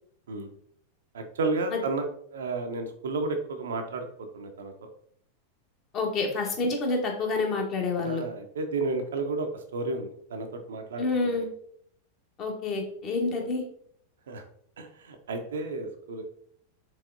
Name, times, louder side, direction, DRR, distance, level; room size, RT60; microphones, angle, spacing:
voice 1, 1.1-2.1 2.3-4.1 4.3-4.7 8.0-11.4 14.3-14.4 14.8-16.2, right 3 dB, 65° right, 6 dB, 0.5 m, -32 dB
voice 2, 5.9-8.2 11.0-11.5 12.4-13.6, left 3 dB, 35° left, 2 dB, 1.0 m, -28 dB
4.7 x 3.4 x 2.5 m, 0.65 s
figure-of-eight pair, 90°, 0 cm